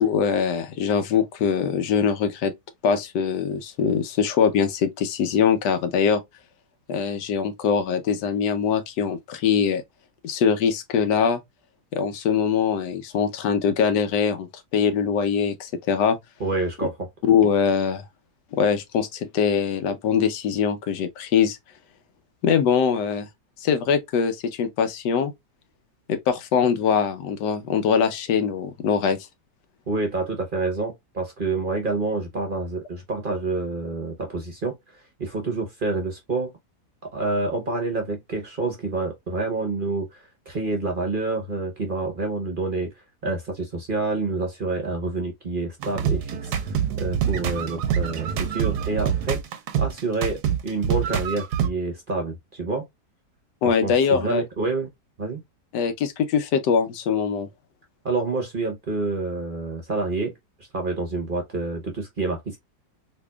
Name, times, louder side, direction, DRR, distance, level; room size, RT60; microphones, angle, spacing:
voice 1, 0.0-2.5 2.8-6.2 6.9-9.8 10.2-11.4 11.9-14.5 14.7-16.2 17.2-18.0 18.5-21.6 22.4-23.3 23.6-25.3 26.1-29.2 53.6-54.4 55.7-57.5, left 7 dB, 85° left, 1.3 m, -22 dB
voice 2, 16.4-17.1 29.9-34.7 35.2-36.5 37.1-42.9 43.2-46.5 47.0-49.4 49.8-52.8 53.6-54.9 55.2-55.4 58.0-60.3 60.7-62.6, right 3 dB, 40° right, 0.8 m, -28 dB
sound 1, 45.8-51.7, right 8 dB, 80° right, 1.2 m, -25 dB
4.1 x 2.9 x 2.2 m
omnidirectional pair, 1.8 m